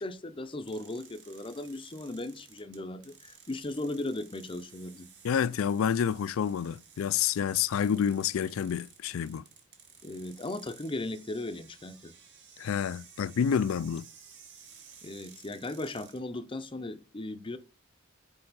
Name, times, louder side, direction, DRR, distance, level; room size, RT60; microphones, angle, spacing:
voice 1, 0.0-5.1 10.0-12.1 15.0-17.6, left 2 dB, 25° left, 0.6 m, -37 dB
sound 1, 0.7-16.2, right 7 dB, 55° right, 1.4 m, -55 dB
voice 2, 5.2-9.4 12.6-14.1, left 8 dB, 75° left, 0.3 m, -28 dB
6.7 x 4.7 x 4.1 m
head